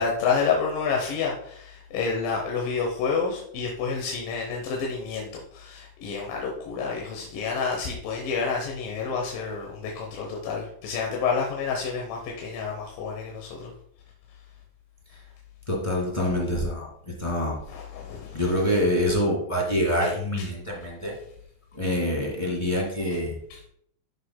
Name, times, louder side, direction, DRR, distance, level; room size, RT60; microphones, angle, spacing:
voice 1, 0.0-5.3 5.5-13.7 17.7-18.4, left 5 dB, 90° left, 0 dB, 2.7 m, -29 dB
voice 2, 15.7-17.6 18.3-21.1 21.7-23.4, left 1 dB, 20° left, -2 dB, 0.8 m, -26 dB
12.0 x 6.5 x 2.2 m, 0.70 s
omnidirectional pair, 3.9 m